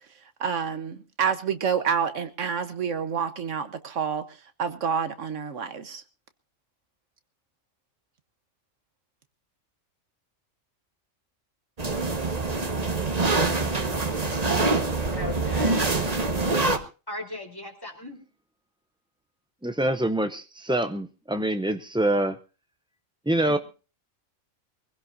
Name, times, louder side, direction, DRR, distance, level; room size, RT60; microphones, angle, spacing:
voice 1, 0.4-4.2 4.6-6.0, right 7 dB, 75° right, 1.4 m, -28 dB
sound 1, 11.8-16.8, right 3 dB, 30° right, 1.4 m, -25 dB
voice 2, 15.1-15.9 17.1-18.2 23.4-23.6, left 2 dB, 15° left, 3.2 m, -37 dB
voice 3, 19.6-22.4 23.3-23.6, right 1 dB, 10° right, 0.3 m, -25 dB
23.5 x 16.0 x 2.6 m
omnidirectional pair, 1.3 m